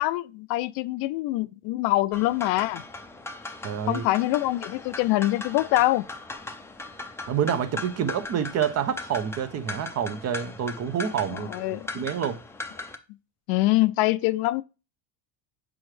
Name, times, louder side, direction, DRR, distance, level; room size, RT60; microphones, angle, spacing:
voice 1, 0.0-2.8 3.9-6.1 11.3-11.9 13.5-14.6, left 18 dB, 65° left, 0.5 m, -24 dB
sound 1, 2.1-13.0, left 3 dB, 5° left, 0.5 m, -39 dB
voice 2, 3.6-4.0 7.2-12.4, right 8 dB, 40° right, 0.7 m, -28 dB
6.2 x 4.9 x 3.2 m
supercardioid pair, 120°, 39 cm